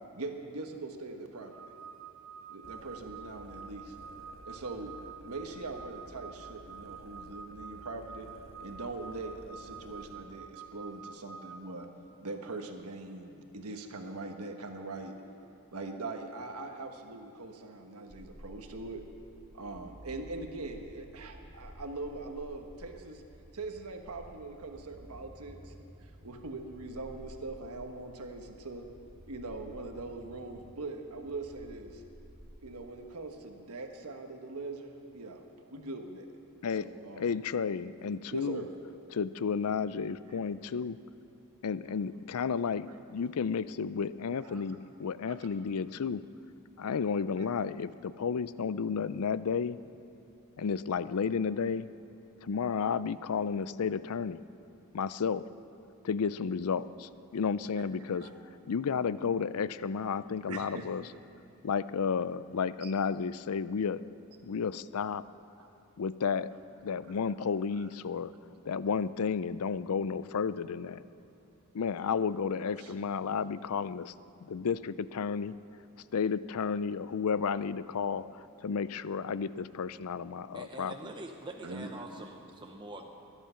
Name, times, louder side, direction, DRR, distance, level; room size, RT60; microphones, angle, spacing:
voice 1, 0.1-1.7 2.5-3.9 4.4-8.3 8.6-11.9 12.2-15.2 15.7-19.0 19.5-23.2 23.5-25.7 26.0-28.8 29.3-32.0 32.6-35.4 35.7-36.3 36.8-37.3 38.3-38.7 42.9-43.0 44.4-44.6 45.2-45.5 47.4-47.5 57.8-57.9 58.1-58.3 60.5-60.9 62.8-62.9 65.6-65.7 67.8-67.9 72.8-72.9 81.6-81.9, right 3 dB, 80° right, 4 dB, 1.3 m, -42 dB
sound 1, 1.5-11.6, right 6 dB, 60° right, 2.4 m, -48 dB
sound 2, 2.6-10.2, left 1 dB, 60° left, 1.6 m, -54 dB
sound 3, 18.1-32.8, equal, 40° right, 2.1 m, -53 dB
voice 2, 37.1-38.6 39.1-41.0 41.6-46.2 46.8-49.8 50.6-51.9 52.4-54.4 54.9-55.5 56.0-58.3 58.7-61.0 61.6-64.0 64.4-65.2 66.0-66.5 66.8-68.3 68.7-71.0 71.7-74.1 74.4-75.6 76.1-80.9, left 6 dB, 75° left, 16 dB, 0.5 m, -32 dB
voice 3, 80.5-83.1, right 2 dB, 20° right, 2 dB, 0.7 m, -44 dB
23.0 x 10.5 x 5.8 m, 3.0 s
head